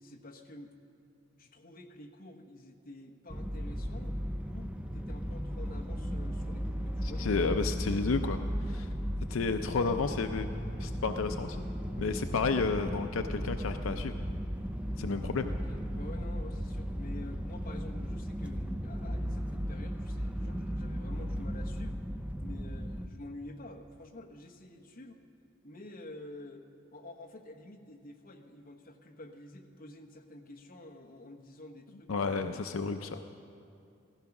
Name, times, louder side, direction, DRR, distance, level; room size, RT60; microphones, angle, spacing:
voice 1, 0.0-0.8 1.4-4.2 4.4-7.6 15.4-22.0 22.4-25.2 25.6-32.7 33.0-33.2, left 1 dB, 45° left, 2 dB, 1.1 m, -49 dB
sound 1, 3.3-23.1, equal, 5° right, 0.5 m, -36 dB
voice 2, 7.0-8.4 8.7-8.9 9.3-10.5 10.8-11.6 12.0-14.2 15.0-15.5 32.1-33.2, left 4 dB, 80° left, 7 dB, 0.5 m, -31 dB
15.5 x 14.5 x 5.9 m, 2.6 s
head